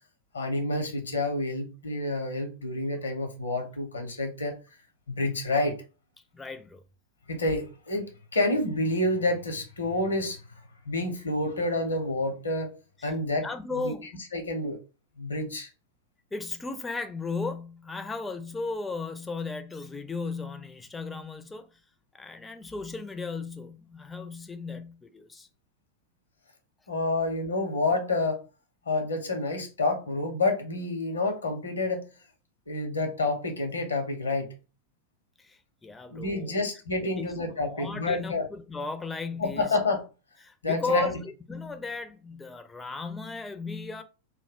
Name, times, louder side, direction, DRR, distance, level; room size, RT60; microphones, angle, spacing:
voice 1, 0.3-4.5 5.1-5.8 7.3-10.4 10.9-12.7 13.0-13.5 13.7-13.9 14.3-14.8 15.2-15.7 26.9-28.4 28.9-32.1 32.7-34.5 36.1-38.5 39.4-40.0 40.6-41.2, left 2 dB, 75° left, 0.7 m, -28 dB
voice 2, 6.3-6.8 13.0-13.1 13.4-14.1 16.3-21.7 22.1-25.5 35.4-36.6 37.0-39.8 40.4-44.0, left 4 dB, 10° left, 0.4 m, -35 dB
2.2 x 2.1 x 3.5 m
figure-of-eight pair, 90°, 0 cm